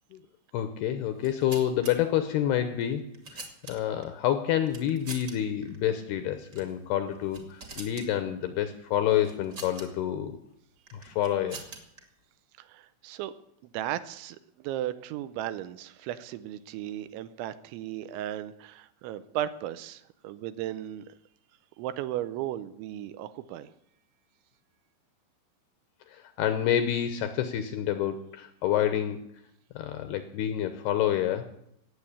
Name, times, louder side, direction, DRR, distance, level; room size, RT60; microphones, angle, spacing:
voice 1, 0.5-10.4 10.9-11.6 26.1-29.2 29.8-31.5, left 11 dB, 75° left, 9 dB, 2.5 m, -28 dB
sound 1, 1.1-1.9 2.8-4.0 4.7-5.3 5.6-5.8 6.5-6.7 7.1-8.1 9.2-9.9 10.9-12.0, right 3 dB, 35° right, 1.8 m, -44 dB
voice 2, 12.6-13.3 13.6-21.1 21.8-23.7, right 12 dB, 80° right, 13 dB, 3.0 m, -36 dB
18.0 x 7.8 x 8.6 m, 0.73 s
omnidirectional pair, 5.5 m